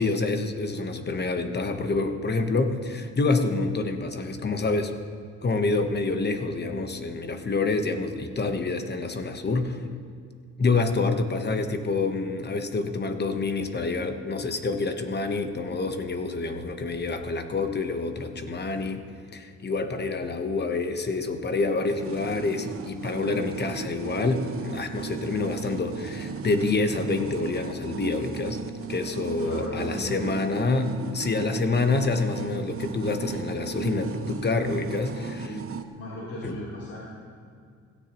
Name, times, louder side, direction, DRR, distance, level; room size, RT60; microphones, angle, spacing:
voice 1, 0.0-4.9 5.4-9.8 10.6-19.0 19.3-28.6 28.9-35.5 36.4-36.6, left 3 dB, 35° left, 7 dB, 1.1 m, -27 dB
sound 1, 21.9-35.8, right 6 dB, 45° right, 0.8 m, -36 dB
voice 2, 29.4-30.2 35.4-37.1, left 1 dB, 55° left, -8 dB, 3.5 m, -37 dB
16.5 x 13.5 x 3.0 m, 2.2 s
cardioid pair, 90°, 30 cm